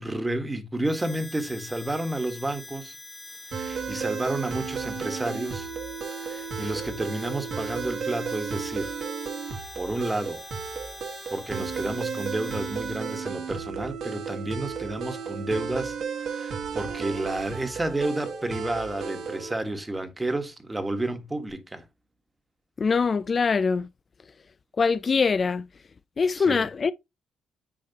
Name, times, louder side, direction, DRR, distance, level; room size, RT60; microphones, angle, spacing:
voice 1, 0.0-2.9 3.5-5.7 6.2-8.9 9.7-10.4 11.3-21.8 26.4-26.7, right 1 dB, 15° right, 1.4 m, -31 dB
Harmonica, 0.8-13.3, left 3 dB, 20° left, 1.2 m, -45 dB
sound 1, 3.5-19.6, right 6 dB, 65° right, 2.1 m, -34 dB
voice 2, 22.8-23.9 24.8-25.7 26.2-26.9, left 5 dB, 40° left, 0.4 m, -23 dB
9.1 x 4.7 x 2.9 m
cardioid pair, 90°, 0 cm